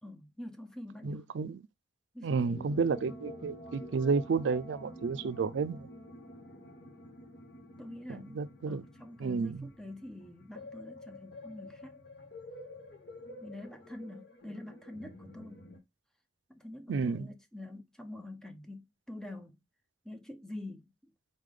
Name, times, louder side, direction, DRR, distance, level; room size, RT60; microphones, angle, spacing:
voice 1, 0.0-1.3 2.1-2.9 7.8-12.0 13.4-15.7 16.5-19.6 20.0-21.1, left 1 dB, 5° left, 0.7 m, -46 dB
voice 2, 1.0-1.6 2.2-5.9 8.4-8.8 9.2-9.6 16.9-17.3, right 5 dB, 90° right, 0.4 m, -31 dB
sound 1, 2.4-15.8, left 1 dB, 65° left, 1.7 m, -49 dB
4.2 x 3.3 x 3.7 m
head